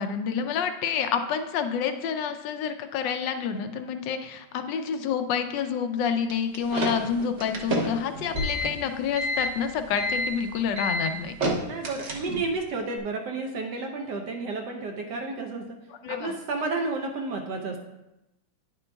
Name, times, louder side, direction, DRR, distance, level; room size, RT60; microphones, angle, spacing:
voice 1, 0.0-11.3 16.0-16.3, left 7 dB, 75° left, 8 dB, 1.1 m, -28 dB
sound 1, 6.3-12.6, equal, 45° right, 1.0 m, -29 dB
voice 2, 11.6-15.8 16.1-17.8, right 3 dB, 65° right, 2 dB, 1.2 m, -31 dB
10.0 x 6.8 x 2.3 m, 0.94 s
omnidirectional pair, 2.2 m